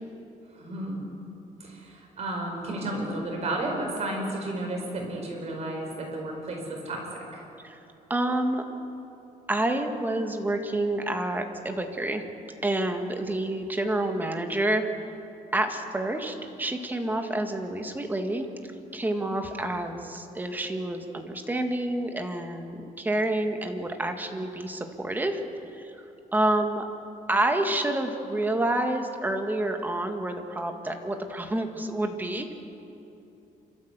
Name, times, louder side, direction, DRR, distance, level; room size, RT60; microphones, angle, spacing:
voice 1, 0.5-1.0 1.6-7.4, right 1 dB, 45° right, 1 dB, 5.1 m, -32 dB
voice 2, 8.1-8.6 9.5-12.2 12.6-14.8 15.5-18.5 18.9-25.4 25.8-25.9 26.3-26.8 27.3-32.5, right 1 dB, 10° right, 5 dB, 1.7 m, -28 dB
27.5 x 13.0 x 8.1 m, 2.9 s
cardioid pair, 150°, 15 cm